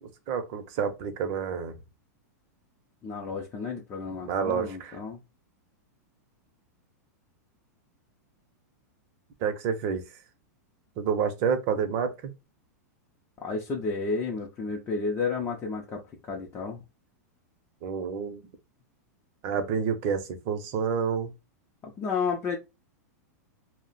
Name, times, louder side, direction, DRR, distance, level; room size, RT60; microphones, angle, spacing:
voice 1, 0.0-1.7 4.2-5.0 9.4-10.0 11.0-12.3 17.8-18.4 19.4-21.3, right 6 dB, 45° right, 0.7 m, -29 dB
voice 2, 3.0-5.2 13.4-16.8 21.8-22.6, left 4 dB, 25° left, 0.5 m, -32 dB
2.4 x 2.1 x 3.9 m
hypercardioid pair, 135°, 9 cm